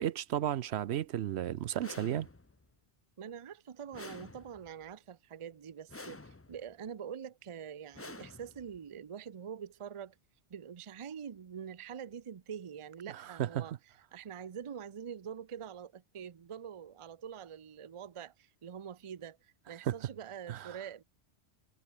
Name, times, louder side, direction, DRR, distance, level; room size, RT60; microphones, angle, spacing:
voice 1, 0.0-2.3 13.1-13.7 19.8-19.9 20.5-20.8, right 11 dB, 75° right, 0.9 m, -34 dB
sound 1, 1.8-2.7 3.9-4.9 5.9-6.7 7.9-8.9, left 2 dB, 15° left, 0.5 m, -49 dB
voice 2, 3.2-10.2 10.5-13.7 14.1-21.0, right 8 dB, 35° right, 0.5 m, -45 dB
omnidirectional pair, 1.2 m